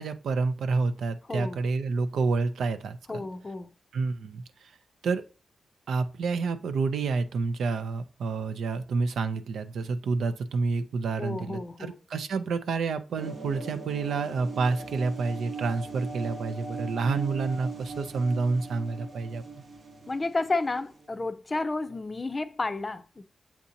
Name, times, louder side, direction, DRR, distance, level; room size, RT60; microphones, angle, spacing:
voice 1, 0.0-3.2 3.9-4.7 5.0-5.2 5.9-19.4, right 4 dB, 85° right, 0.4 m, -29 dB
voice 2, 1.3-1.6 3.1-3.7 11.2-11.9 20.1-23.2, left 3 dB, 35° left, 0.5 m, -31 dB
sound 1, 13.2-21.1, right 3 dB, 65° right, 0.8 m, -40 dB
7.1 x 2.7 x 2.5 m
cardioid pair, 60°, 0 cm